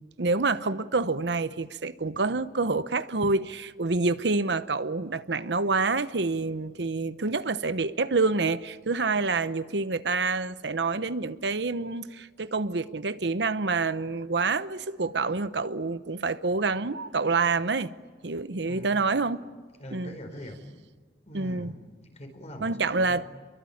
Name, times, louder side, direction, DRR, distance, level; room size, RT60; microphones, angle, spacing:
voice 1, 0.0-17.9 18.2-19.4 19.9-20.2 21.3-21.7 22.6-23.3, right 3 dB, 70° right, 0.9 m, -27 dB
voice 2, 18.7-19.0 19.8-20.6 21.2-23.2, equal, 40° left, 5.1 m, -43 dB
28.0 x 23.5 x 8.7 m
head